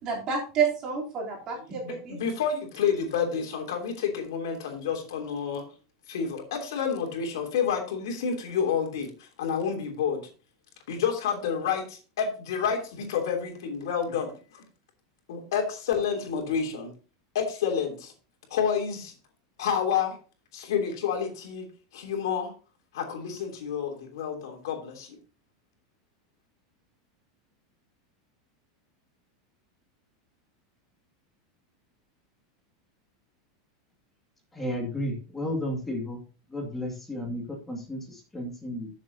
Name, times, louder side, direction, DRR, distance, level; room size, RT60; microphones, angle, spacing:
voice 1, 0.0-2.2, right 6 dB, 30° right, -3 dB, 3.4 m, -29 dB
voice 2, 1.8-5.6 6.1-10.3 10.9-14.6 15.3-16.9 17.3-18.1 18.5-19.1 19.6-20.2 20.5-21.7 21.9-22.5 22.9-25.2, left 7 dB, 80° left, 3 dB, 3.1 m, -29 dB
voice 3, 34.5-36.2 36.5-38.9, left 1 dB, 10° left, 1 dB, 2.1 m, -33 dB
13.5 x 7.4 x 2.8 m, 0.35 s
supercardioid pair, 170°, 2 cm